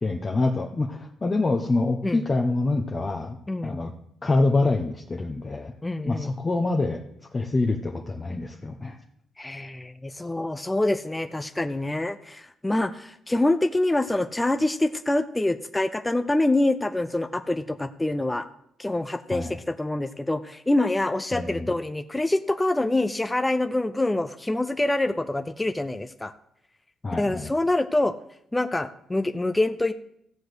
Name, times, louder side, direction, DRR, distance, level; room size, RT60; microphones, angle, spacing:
voice 1, 0.0-3.4 3.6-3.9 4.2-5.7 6.0-7.0 7.3-9.0 19.3-19.6 21.3-21.7 27.0-27.5, left 2 dB, 30° left, 2 dB, 1.0 m, -25 dB
voice 2, 3.5-3.8 5.8-6.3 9.4-18.5 18.8-26.3 27.2-28.1 28.5-29.9, left 2 dB, 10° left, 9 dB, 0.5 m, -25 dB
14.0 x 4.9 x 7.9 m, 0.74 s
cardioid pair, 90°, 0 cm